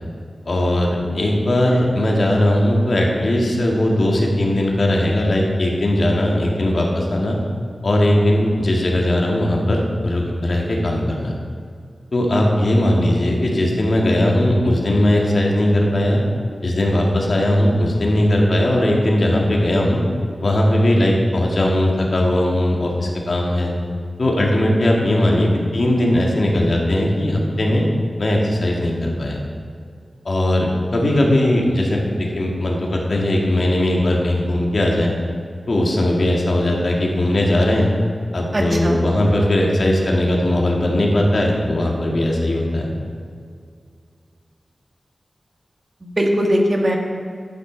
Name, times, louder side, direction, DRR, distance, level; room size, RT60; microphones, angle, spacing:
voice 1, 0.5-7.4 7.8-11.3 12.1-16.2 16.6-20.0 20.4-23.7 24.2-27.9 28.2-29.4 30.3-35.1 35.7-37.9 38.3-42.9, left 1 dB, 60° left, -1 dB, 1.9 m, -18 dB
voice 2, 38.5-39.0 46.0-47.0, equal, 40° right, 0 dB, 1.6 m, -19 dB
11.5 x 9.4 x 3.9 m, 2.2 s
wide cardioid pair, 65°, 0 cm